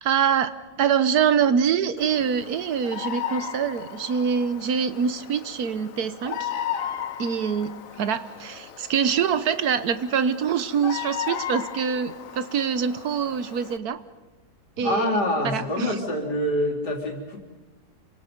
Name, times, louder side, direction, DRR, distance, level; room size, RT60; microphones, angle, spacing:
voice 1, 0.0-6.5 7.2-14.0 14.8-15.2 15.4-16.0, right 7 dB, 70° right, 13 dB, 1.5 m, -25 dB
Bird vocalization bird call bird song, 2.0-13.8, left 9 dB, 60° left, 1.3 m, -36 dB
voice 2, 14.8-17.4, left 1 dB, 90° left, 1 dB, 4.2 m, -25 dB
28.5 x 25.0 x 5.3 m, 1.2 s
omnidirectional pair, 1.7 m